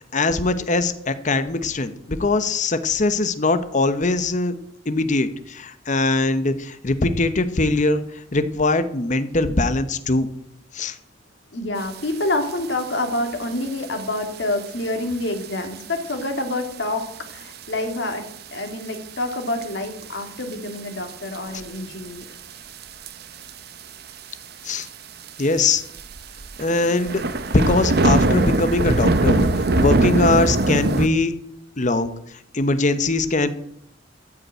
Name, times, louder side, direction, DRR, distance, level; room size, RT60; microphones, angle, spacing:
voice 1, 0.1-4.6 4.9-8.0 8.3-10.3 10.7-10.9 24.6-24.9 25.4-25.8 26.6-27.2 27.5-29.5 29.8-31.3 31.8-32.1 32.5-33.5, left 2 dB, 40° left, 11 dB, 0.9 m, -21 dB
voice 2, 11.5-17.0 17.3-22.3, left 2 dB, 70° left, 5 dB, 2.2 m, -27 dB
sound 1, 12.4-12.5 12.8-13.2 13.8-14.0 14.6-14.7 15.4-15.5 15.8-15.9 16.1-16.2 17.3-17.6 17.9-18.0 18.9-19.0 19.6-20.0 20.4-20.5 21.1-21.8 22.8-23.1 23.4-23.5 23.8-23.9 24.1-24.2 24.8-24.9 25.3-25.4 25.9-31.1, right 2 dB, 55° right, 0.8 m, -21 dB
13.5 x 5.5 x 8.8 m, 0.72 s
head